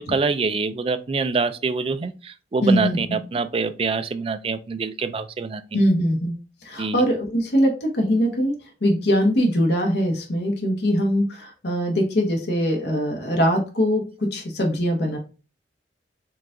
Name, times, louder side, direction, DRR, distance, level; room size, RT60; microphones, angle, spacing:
voice 1, 0.0-5.8 6.8-7.0, right 4 dB, 30° right, 11 dB, 0.3 m, -25 dB
voice 2, 2.6-3.2 5.7-6.3 6.6-8.6 8.8-15.2, equal, 65° left, 2 dB, 1.0 m, -22 dB
4.6 x 2.4 x 3.7 m, 0.33 s
head